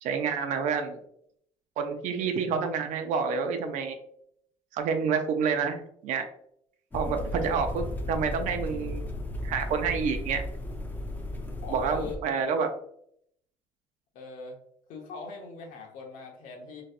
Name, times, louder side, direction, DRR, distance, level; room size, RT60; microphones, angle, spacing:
voice 1, 0.0-1.0 1.8-4.0 4.7-6.3 6.9-9.0 9.4-10.4 11.7-12.7, right 6 dB, 70° right, 6 dB, 0.6 m, -28 dB
sound 1, 6.9-12.2, left 1 dB, 15° left, 0.5 m, -35 dB
voice 2, 11.6-12.2 14.1-14.6 14.9-16.8, left 3 dB, 75° left, 1 dB, 1.1 m, -41 dB
4.1 x 3.1 x 2.4 m, 0.70 s
cardioid pair, 145°, 13 cm